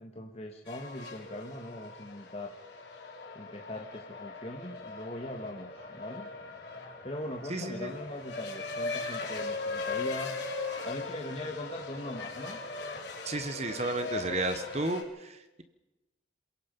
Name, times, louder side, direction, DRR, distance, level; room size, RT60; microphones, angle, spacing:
voice 1, 0.0-2.6 3.3-6.3 7.0-10.4 10.8-12.6, left 1 dB, 35° left, 2 dB, 1.5 m, -40 dB
sound 1, 0.6-15.0, left 3 dB, 65° left, 3.9 m, -39 dB
voice 2, 7.5-7.9 13.2-15.6, right 2 dB, 35° right, 9 dB, 1.1 m, -33 dB
27.5 x 17.5 x 5.4 m, 1.0 s
head